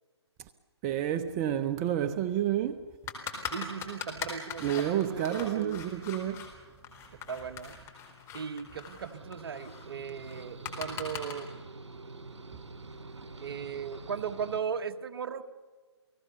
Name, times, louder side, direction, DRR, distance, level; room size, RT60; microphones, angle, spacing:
voice 1, 0.8-2.8 4.6-6.5, right 11 dB, 25° right, 0.7 m, -29 dB
sound 1, 3.1-6.5 6.8-11.3, left 8 dB, 20° left, 4.3 m, -41 dB
voice 2, 3.5-5.8 7.3-7.8 8.3-11.5 13.4-15.4, right 6 dB, 55° right, 1.4 m, -37 dB
sound 2, 9.1-14.6, right 3 dB, 80° right, 2.9 m, -47 dB
29.5 x 18.5 x 6.9 m
hypercardioid pair, 140°, 15 cm